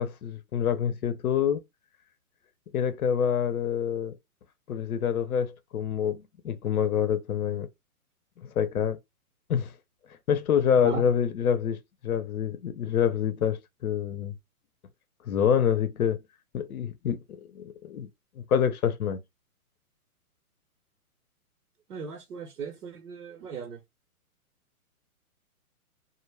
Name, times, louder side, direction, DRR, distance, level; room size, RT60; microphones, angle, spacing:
voice 1, 0.0-1.6 2.7-4.1 4.7-7.7 8.4-9.0 9.5-9.7 10.3-11.8 12.0-14.3 15.3-16.2 16.5-17.2 17.5-18.1 18.4-19.2, left 8 dB, 75° left, 0.6 m, -26 dB
voice 2, 21.9-23.8, right 6 dB, 80° right, 0.8 m, -37 dB
2.1 x 2.0 x 3.2 m
hypercardioid pair, 130°, 44 cm